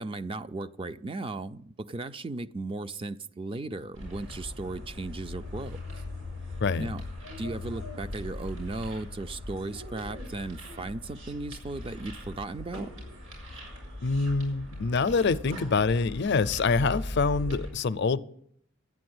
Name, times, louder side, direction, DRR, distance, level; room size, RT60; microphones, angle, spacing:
voice 1, 0.0-5.8 6.8-7.0 7.4-12.9, right 2 dB, 25° right, 0.4 m, -36 dB
sound 1, 3.9-17.7, left 1 dB, 85° right, 7.3 m, -40 dB
voice 2, 14.0-18.2, left 4 dB, 55° left, 0.5 m, -25 dB
12.0 x 9.6 x 7.9 m
head